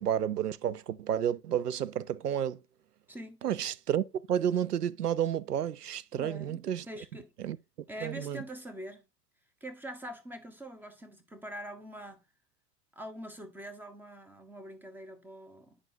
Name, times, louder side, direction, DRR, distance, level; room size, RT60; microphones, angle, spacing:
voice 1, 0.0-2.6 3.4-6.8 7.4-7.6 8.0-8.4, right 10 dB, 80° right, 0.6 m, -31 dB
voice 2, 3.1-3.4 6.1-7.3 7.9-9.1 9.6-12.2 12.9-15.8, equal, 5° right, 0.9 m, -44 dB
10.5 x 4.8 x 2.7 m
figure-of-eight pair, 90°, 47 cm